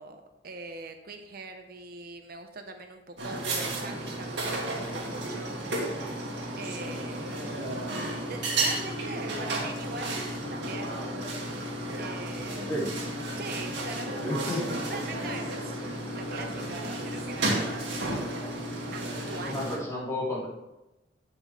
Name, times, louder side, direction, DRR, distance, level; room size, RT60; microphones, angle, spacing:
voice 1, 0.0-5.6 6.6-7.7 8.2-10.2 10.5-11.0 11.9-12.8 13.4-14.6 14.9-18.1 18.9-19.6, right 3 dB, 55° right, 6 dB, 0.8 m, -42 dB
sound 1, 3.2-19.8, right 1 dB, 75° right, 2.3 m, -33 dB
voice 2, 7.4-7.8 12.7-12.9 14.2-14.8 19.4-20.5, left 1 dB, 15° left, -6 dB, 3.4 m, -32 dB
11.0 x 8.3 x 3.5 m, 0.98 s
head